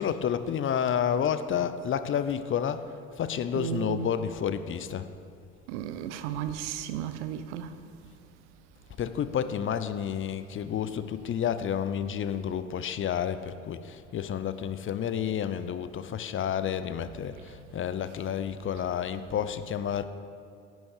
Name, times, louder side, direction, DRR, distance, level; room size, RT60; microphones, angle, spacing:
voice 1, 0.0-2.8 3.2-5.1 9.0-20.0, left 8 dB, 35° left, 0.6 m, -30 dB
voice 2, 3.5-4.1 5.7-7.7, right 10 dB, 75° right, 0.7 m, -34 dB
10.5 x 6.3 x 6.5 m
hypercardioid pair, 65°, 35 cm